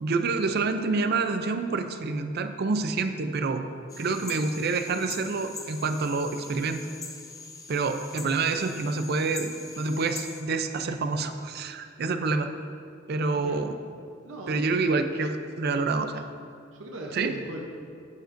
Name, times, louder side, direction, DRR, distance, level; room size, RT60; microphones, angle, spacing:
voice 1, 0.0-3.6 4.0-6.8 7.7-12.5 13.1-13.8 14.5-16.2 17.1-17.3, right 4 dB, 50° right, 8 dB, 0.4 m, -27 dB
sound 1, 3.9-10.4, left 4 dB, 15° left, 0.5 m, -42 dB
voice 2, 14.2-15.0 16.8-17.6, right 1 dB, 70° right, 0 dB, 0.8 m, -39 dB
9.3 x 7.6 x 2.6 m, 2.3 s
head